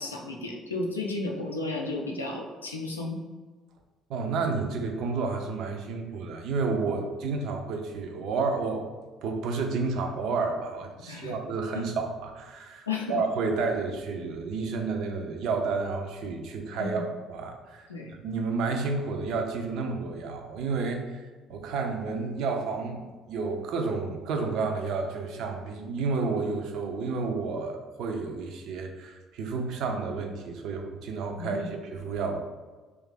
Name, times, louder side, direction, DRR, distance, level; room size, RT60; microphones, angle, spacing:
voice 1, 0.0-3.2 11.1-11.3 11.7-11.8 12.9-13.2 16.8-17.1 17.9-18.1 31.4-31.7, left 3 dB, 85° left, 0 dB, 0.3 m, -33 dB
voice 2, 4.1-8.9 9.2-17.9 18.2-21.2 21.5-32.4, right 4 dB, 60° right, 4 dB, 0.4 m, -31 dB
2.6 x 2.4 x 3.7 m, 1.3 s
figure-of-eight pair, 50°, 0 cm